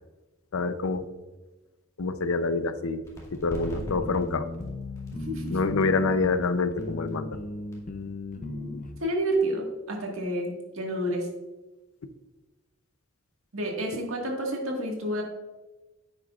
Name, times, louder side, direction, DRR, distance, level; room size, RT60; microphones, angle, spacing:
voice 1, 0.5-1.0 2.0-3.0 3.3-4.5 5.5-7.4, left 3 dB, 80° left, 11 dB, 0.6 m, -26 dB
sound 1, 3.0-10.4, equal, 15° left, 2.1 m, -44 dB
sound 2, 3.7-8.9, left 2 dB, 40° left, 0.6 m, -36 dB
voice 2, 5.3-5.6 8.4-11.3 13.5-15.2, right 1 dB, 75° right, 0 dB, 1.7 m, -30 dB
10.0 x 8.0 x 2.4 m, 1.1 s
head